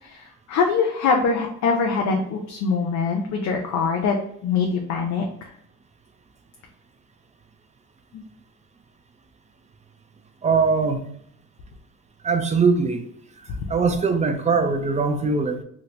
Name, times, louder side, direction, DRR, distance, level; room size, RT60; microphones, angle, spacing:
voice 1, 0.0-4.2 4.4-5.5 8.1-8.2, left 5 dB, 70° left, 1 dB, 0.6 m, -23 dB
voice 2, 10.4-11.1 12.2-13.1 13.7-15.6, right 4 dB, 25° right, 6 dB, 0.4 m, -21 dB
2.8 x 2.5 x 3.1 m, 0.68 s
cardioid pair, 90°, 30 cm